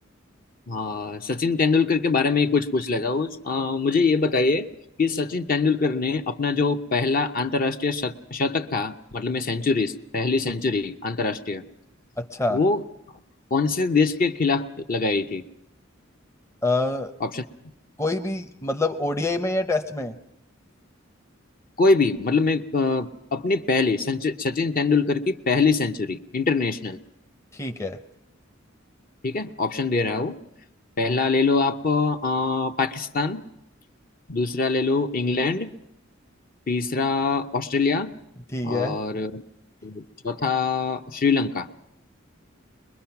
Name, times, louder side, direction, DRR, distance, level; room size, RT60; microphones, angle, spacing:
voice 1, 0.7-4.7 5.0-11.6 12.5-12.8 13.5-15.4 17.2-17.4 21.8-27.0 29.2-30.4 31.0-33.4 34.3-35.7 36.7-38.1 38.6-39.4 39.8-41.7, left 4 dB, 45° left, 6 dB, 0.8 m, -23 dB
voice 2, 12.2-12.6 16.6-17.1 18.0-20.2 27.5-28.0 38.5-39.0, left 2 dB, 15° left, 5 dB, 0.7 m, -26 dB
23.0 x 21.5 x 5.9 m, 0.83 s
head